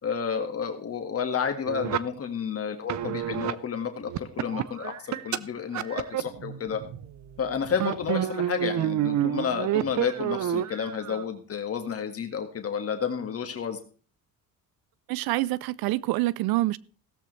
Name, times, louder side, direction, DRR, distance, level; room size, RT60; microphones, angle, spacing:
voice 1, 0.0-6.8 7.4-13.8, left 7 dB, 40° left, 1.7 m, -31 dB
sound 1, 1.7-2.0 2.9-3.5 4.1-5.4 5.7-7.4 7.7-11.2, right 11 dB, 55° right, 0.7 m, -29 dB
voice 2, 15.1-16.8, right 18 dB, 90° right, 0.6 m, -26 dB
16.5 x 13.0 x 3.2 m
cardioid pair, 120°, 35 cm